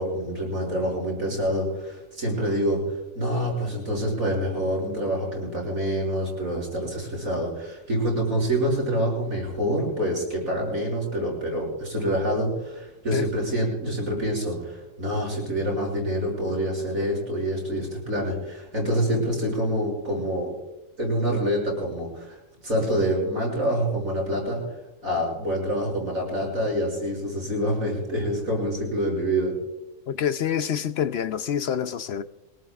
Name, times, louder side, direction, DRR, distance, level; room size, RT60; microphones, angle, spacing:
voice 1, 0.0-20.5 21.0-22.4 22.6-24.6 25.0-29.5, equal, 85° right, 6.9 m, -26 dB
voice 2, 30.1-32.2, left 8 dB, 60° left, 0.8 m, -26 dB
23.5 x 18.5 x 2.4 m
omnidirectional pair, 1.4 m